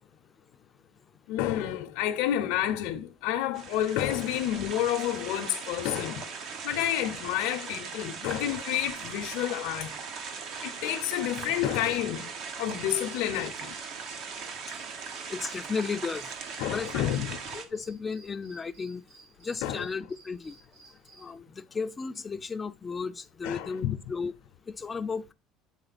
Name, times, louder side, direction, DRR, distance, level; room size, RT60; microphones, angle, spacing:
voice 1, 1.3-6.3 6.6-9.9 10.6-12.3 12.6-13.7 16.6-17.4 19.6-19.9 23.4-24.0, left 12 dB, 75° left, 0.6 m, -29 dB
sound 1, 3.5-17.6, right 5 dB, 55° right, 1.2 m, -39 dB
sound 2, 12.4-21.3, right 3 dB, 90° right, 3.6 m, -57 dB
voice 2, 15.3-16.3 16.7-17.3 17.5-19.0 19.4-20.6 21.2-24.3 24.8-25.3, left 5 dB, 20° left, 0.5 m, -34 dB
7.9 x 3.7 x 4.1 m
cardioid pair, 130°, 0 cm